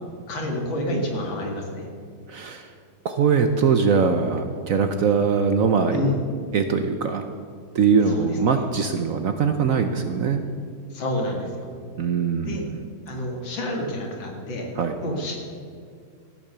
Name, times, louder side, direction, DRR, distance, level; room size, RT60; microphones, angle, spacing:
voice 1, 0.3-1.9 5.9-6.2 8.1-8.2 10.9-11.7 12.4-12.6 13.1-14.7 15.0-15.7, left 1 dB, 90° left, 1 dB, 2.8 m, -28 dB
voice 2, 2.3-2.7 3.0-6.0 6.5-7.2 7.7-10.4 12.0-12.8 14.8-15.0, right 5 dB, 60° right, 7 dB, 0.9 m, -22 dB
14.5 x 8.6 x 6.8 m, 2.2 s
omnidirectional pair, 2.0 m